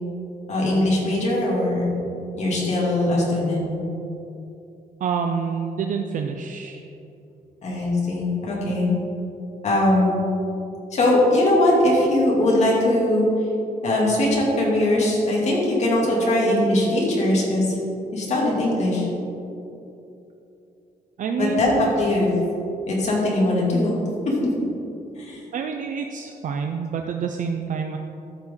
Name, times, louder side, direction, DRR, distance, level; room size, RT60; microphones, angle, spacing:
voice 1, 0.5-1.9 2.4-3.7 7.6-8.9 9.6-10.2 10.9-13.3 13.8-17.8 18.1-19.1 21.4-22.3 22.9-23.9 24.2-24.5 25.1-25.4, left 1 dB, 45° left, -4 dB, 2.3 m, -21 dB
voice 2, 5.0-6.9 21.2-21.9 25.5-28.0, right 6 dB, 55° right, 4 dB, 0.5 m, -27 dB
13.5 x 6.2 x 3.7 m, 2.8 s
wide cardioid pair, 170°, 16 cm